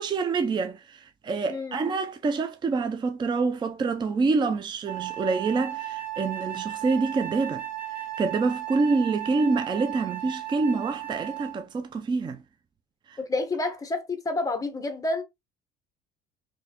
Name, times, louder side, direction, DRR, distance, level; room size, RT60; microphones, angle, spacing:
voice 1, 0.0-7.6 7.9-12.4 13.1-13.2, right 4 dB, 25° right, 0.5 m, -27 dB
voice 2, 1.5-1.8 13.2-15.2, left 2 dB, 20° left, 1.0 m, -29 dB
Wind instrument woodwind instrument, 4.9-11.6, right 13 dB, 55° right, 1.7 m, -35 dB
3.9 x 3.2 x 2.9 m
cardioid pair, 120°, 18 cm